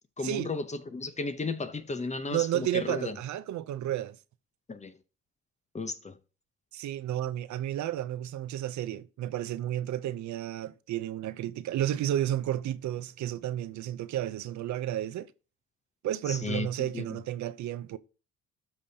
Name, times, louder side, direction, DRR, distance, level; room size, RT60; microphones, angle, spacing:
voice 1, 0.2-3.2 4.7-4.9 5.7-6.2 16.3-17.2, left 3 dB, 25° left, 0.7 m, -34 dB
voice 2, 2.3-4.2 6.7-15.3 16.0-18.0, right 12 dB, 70° right, 0.6 m, -32 dB
12.5 x 5.1 x 2.8 m
cardioid pair, 90°, 30 cm